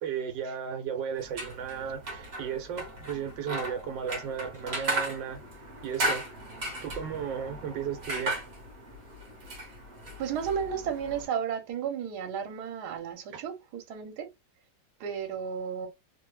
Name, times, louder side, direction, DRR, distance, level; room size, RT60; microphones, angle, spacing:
voice 1, 0.0-6.2 6.8-8.4 13.3-13.5, right 7 dB, 85° right, 1.3 m, -35 dB
sound 1, 1.2-11.3, right 2 dB, 40° right, 1.0 m, -36 dB
voice 2, 10.2-14.3 15.0-15.9, right 7 dB, 65° right, 1.3 m, -33 dB
3.2 x 2.2 x 3.1 m
omnidirectional pair, 2.0 m